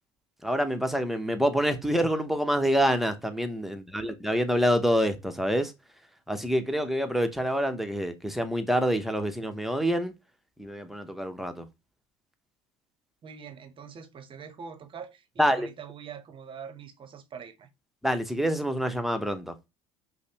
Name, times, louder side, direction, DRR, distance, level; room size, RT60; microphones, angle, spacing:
voice 1, 0.4-5.7 6.3-10.1 10.6-11.7 15.4-15.7 18.0-19.6, equal, ahead, 0.7 m, -26 dB
voice 2, 13.2-17.7, right 7 dB, 35° right, 0.7 m, -44 dB
5.2 x 2.0 x 2.9 m
hypercardioid pair, 75°, 14 cm